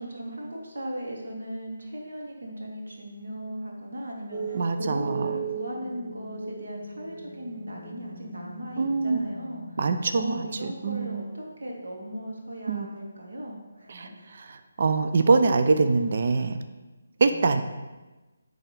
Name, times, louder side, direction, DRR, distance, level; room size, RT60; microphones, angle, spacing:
voice 1, 0.0-9.8 10.1-14.4 17.2-17.6, equal, 70° right, -2 dB, 2.2 m, -37 dB
sound 1, 4.3-11.2, right 5 dB, 15° right, 1.2 m, -38 dB
voice 2, 4.5-5.3 8.8-9.2 9.8-11.2 12.7-12.9 13.9-14.0 14.8-16.6 17.2-17.6, right 4 dB, 50° right, 8 dB, 0.5 m, -23 dB
9.2 x 3.5 x 5.3 m, 1.2 s
figure-of-eight pair, 155°, 0 cm